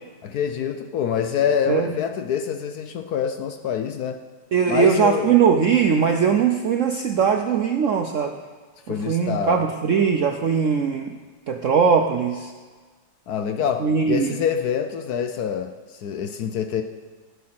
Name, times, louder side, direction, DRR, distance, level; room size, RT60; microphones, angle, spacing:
voice 1, 0.2-4.2 4.7-5.3 8.9-9.6 13.3-16.8, left 8 dB, 65° left, 7 dB, 1.0 m, -26 dB
voice 2, 4.5-8.3 8.9-11.2 11.5-12.5 13.8-14.3, right 6 dB, 65° right, 4 dB, 0.7 m, -20 dB
15.0 x 8.5 x 5.9 m, 1.4 s
omnidirectional pair, 2.1 m